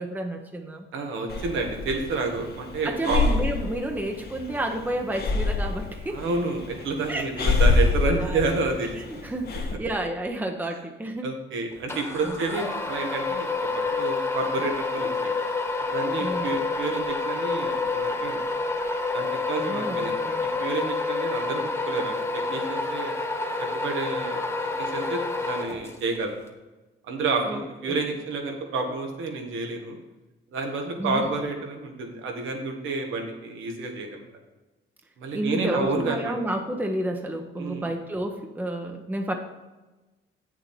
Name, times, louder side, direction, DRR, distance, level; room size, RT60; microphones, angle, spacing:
voice 1, 0.0-0.9 2.8-6.2 7.1-7.5 8.1-8.4 9.2-11.3 12.2-12.4 16.2-16.5 19.7-20.4 27.4-27.6 31.0-31.3 35.3-39.3, right 1 dB, 10° right, 4 dB, 0.9 m, -30 dB
voice 2, 0.9-3.4 6.1-8.9 11.2-15.3 15.9-18.4 19.1-22.2 22.5-23.2 23.8-24.4 24.8-26.3 27.1-30.0 30.5-34.2 35.2-36.3 37.6-37.9, right 3 dB, 80° right, 3 dB, 1.7 m, -29 dB
Breathing, 1.3-9.8, left 3 dB, 55° left, 1.4 m, -27 dB
sound 1, 11.9-26.2, left 3 dB, 15° left, 1.5 m, -28 dB
8.2 x 6.9 x 4.5 m, 1.2 s
cardioid pair, 90°, 20 cm